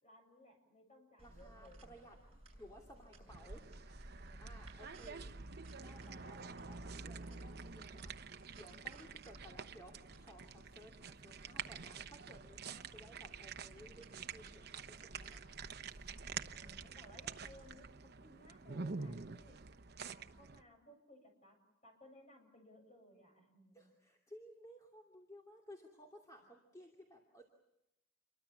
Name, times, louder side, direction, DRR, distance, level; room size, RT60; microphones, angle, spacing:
voice 1, 0.0-1.9 3.0-3.4 4.1-5.1 16.5-19.6 20.0-21.6 21.8-23.9, equal, 35° left, 4 dB, 7.4 m, -62 dB
voice 2, 1.2-2.2 2.5-3.7 4.4-5.4 5.8-8.1 8.5-15.5 15.9-16.1 16.8-16.9 23.7-27.5, equal, 15° left, 0 dB, 2.7 m, -58 dB
sound 1, 1.2-17.7, right 1 dB, 30° right, 6.3 m, -59 dB
sound 2, 3.3-20.6, right 5 dB, 55° right, 0.9 m, -48 dB
28.5 x 23.0 x 7.2 m, 0.87 s
head